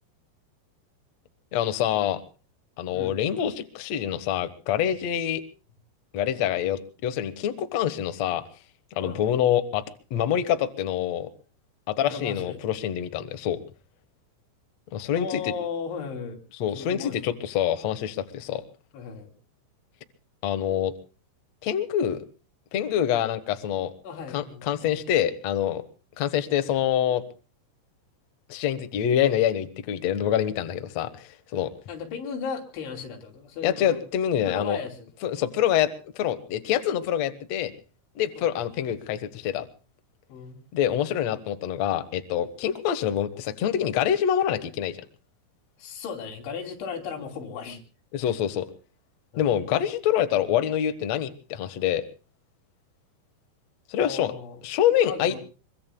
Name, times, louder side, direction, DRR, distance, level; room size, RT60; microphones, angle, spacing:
voice 1, 1.5-2.2 2.8-5.4 6.1-8.4 8.9-9.8 10.1-11.3 11.9-13.6 14.9-15.4 16.6-18.6 20.4-20.9 21.6-22.2 22.7-23.9 24.3-25.8 26.2-27.2 28.5-31.7 33.6-34.8 35.2-37.7 38.1-39.7 40.7-45.0 48.1-48.7 49.4-52.0 53.9-54.3 54.6-55.4, left 10 dB, 90° left, 9 dB, 1.5 m, -26 dB
voice 2, 12.1-12.6 15.2-16.4 16.8-17.4 18.9-19.3 24.0-24.9 31.9-34.0 34.5-35.0 38.4-38.5 40.3-40.6 45.8-47.8 48.2-48.4 49.3-49.5 54.0-54.6 55.0-55.4, left 5 dB, 75° left, 2 dB, 5.3 m, -36 dB
24.5 x 23.5 x 2.3 m, 0.36 s
omnidirectional pair, 5.5 m